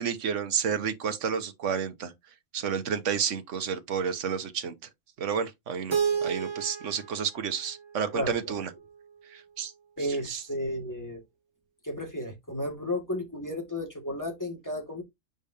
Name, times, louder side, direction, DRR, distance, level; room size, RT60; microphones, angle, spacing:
voice 1, 0.0-2.1 2.5-4.7 5.2-8.7 9.3-9.7 10.2-10.4, right 7 dB, 60° right, 1.4 m, -30 dB
Keyboard (musical), 5.9-8.8, right 6 dB, 35° right, 0.4 m, -32 dB
voice 2, 8.1-8.5 10.0-11.2 11.8-15.0, left 1 dB, 15° left, 2.1 m, -33 dB
7.8 x 5.2 x 2.7 m
omnidirectional pair, 1.5 m